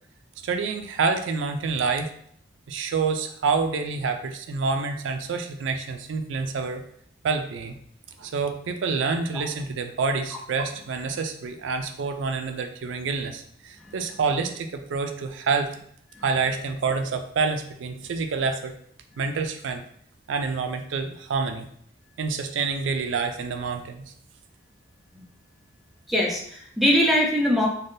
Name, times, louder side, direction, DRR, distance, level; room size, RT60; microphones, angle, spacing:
voice 1, 0.4-2.1 2.7-6.8 7.2-7.8 8.2-15.7 16.2-18.7 19.2-19.8 20.3-21.7 22.2-24.0, right 4 dB, 85° right, 7 dB, 0.4 m, -27 dB
voice 2, 26.1-27.7, equal, ahead, -2 dB, 0.4 m, -21 dB
3.4 x 2.2 x 2.6 m, 0.63 s
head